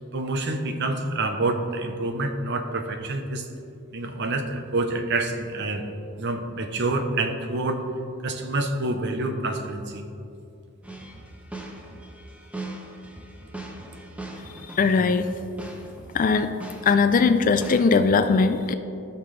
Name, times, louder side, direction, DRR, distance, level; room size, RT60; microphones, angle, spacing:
voice 1, 0.1-3.5 3.9-5.9 6.2-7.8 8.2-10.0, right 2 dB, 55° right, 6 dB, 0.8 m, -27 dB
sound 1, 10.8-16.3 16.6-17.8, right 2 dB, 5° right, 0.8 m, -39 dB
voice 2, 14.7-15.3 16.1-16.5 16.8-18.7, left 4 dB, 40° left, 10 dB, 0.4 m, -20 dB
15.5 x 5.9 x 3.2 m, 2.6 s
head